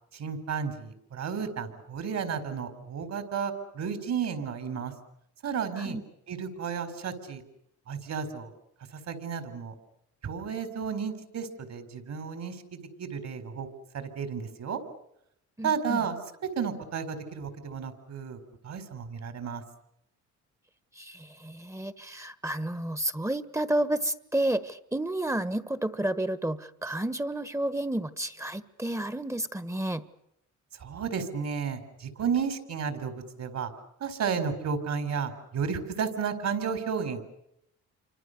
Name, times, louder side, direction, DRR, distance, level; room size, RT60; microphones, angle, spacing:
voice 1, 0.1-4.9 5.4-6.0 6.3-7.4 7.9-8.5 8.9-9.7 10.2-13.7 13.9-14.8 15.6-16.2 16.5-19.6 30.8-33.7 34.0-37.2, right 6 dB, 65° right, 10 dB, 4.7 m, -32 dB
voice 2, 15.6-16.0 21.0-30.0, right 1 dB, 10° right, 14 dB, 1.5 m, -31 dB
28.5 x 25.0 x 6.8 m, 0.79 s
cardioid pair, 90°, 30 cm